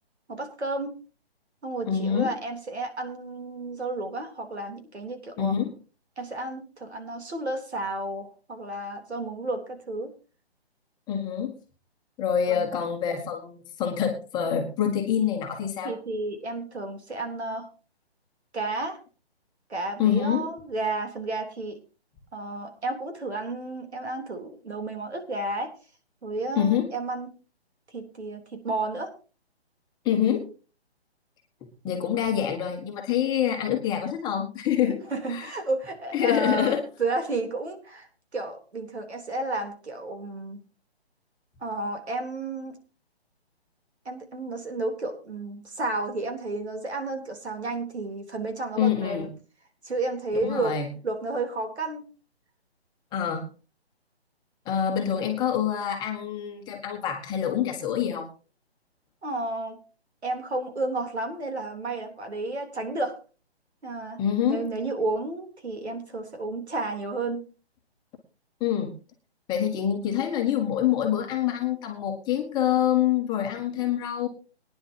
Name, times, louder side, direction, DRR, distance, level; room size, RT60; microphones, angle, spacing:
voice 1, 0.3-0.9 1.6-5.5 6.2-10.1 12.5-12.9 15.8-17.7 18.5-19.0 19.7-21.8 22.3-25.7 26.2-27.3 27.9-29.1 34.9-38.1 38.3-40.6 41.6-42.8 44.1-49.3 49.8-50.8 51.0-52.1 59.2-59.8 60.2-63.2 63.8-67.5, right 2 dB, 80° right, 5 dB, 3.7 m, -32 dB
voice 2, 1.8-2.3 5.4-5.7 11.1-11.6 12.2-16.0 20.0-20.5 26.5-26.9 30.0-30.5 31.8-35.0 35.3-35.5 36.1-36.9 48.8-49.3 50.3-50.9 53.1-53.5 54.6-58.3 64.2-64.7 68.6-68.9 69.5-74.3, left 9 dB, 15° left, 2 dB, 1.5 m, -26 dB
22.5 x 10.0 x 2.9 m, 0.34 s
hypercardioid pair, 150°, 32 cm